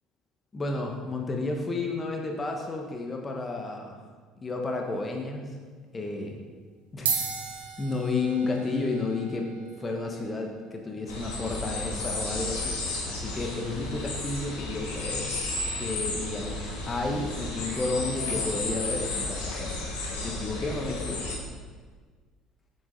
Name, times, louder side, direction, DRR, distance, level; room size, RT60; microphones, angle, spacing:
voice 1, 0.5-4.0 4.4-5.6 5.9-6.4 6.9-7.2 7.8-9.5 9.8-12.7 13.1-15.3 15.7-19.8 20.2-21.4, left 3 dB, 25° left, 1 dB, 1.3 m, -32 dB
sound 1, 5.4-5.7 6.5-6.6 6.9-15.6, right 6 dB, 80° right, 1.2 m, -39 dB
sound 2, 11.1-21.4, left 2 dB, 75° left, 2.0 m, -33 dB
7.8 x 7.6 x 3.9 m, 1.5 s
hypercardioid pair, 60°, 0 cm